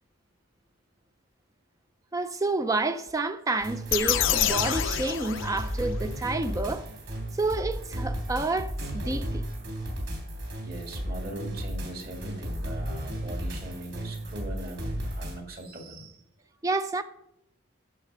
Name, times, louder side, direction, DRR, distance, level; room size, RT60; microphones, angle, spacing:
voice 1, 2.1-6.9 7.4-9.4 16.6-17.0, right 3 dB, 15° right, 0.4 m, -29 dB
sound 1, 3.6-15.4, equal, 65° right, 3.5 m, -34 dB
sound 2, 3.9-6.0, left 10 dB, 65° left, 0.5 m, -27 dB
voice 2, 10.6-16.2, right 1 dB, 45° right, 1.8 m, -40 dB
14.0 x 4.9 x 5.3 m
head